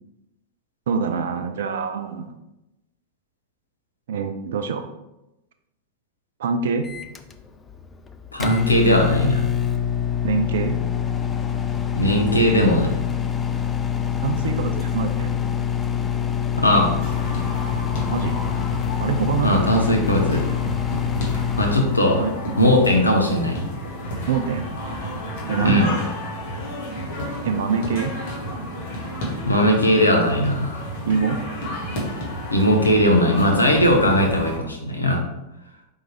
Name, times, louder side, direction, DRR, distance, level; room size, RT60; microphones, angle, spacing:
voice 1, 0.9-2.3 4.1-4.9 6.4-6.9 10.2-10.8 14.2-15.3 18.1-18.4 19.0-19.6 22.2-22.3 24.3-24.7 25.5-26.0 27.4-28.1 31.1-31.4, right 6 dB, 60° right, 7 dB, 0.3 m, -25 dB
Microwave oven, 6.8-21.9, left 8 dB, 20° left, 0.4 m, -25 dB
voice 2, 8.3-9.4 11.9-12.9 16.6-17.0 19.4-20.4 21.6-22.2 22.6-23.6 25.6-25.9 29.5-30.8 32.5-35.2, equal, 80° left, 2 dB, 0.7 m, -18 dB
sound 1, 17.0-34.6, equal, 55° left, 1.3 m, -31 dB
4.8 x 3.6 x 3.0 m, 0.93 s
figure-of-eight pair, 90°, 0 cm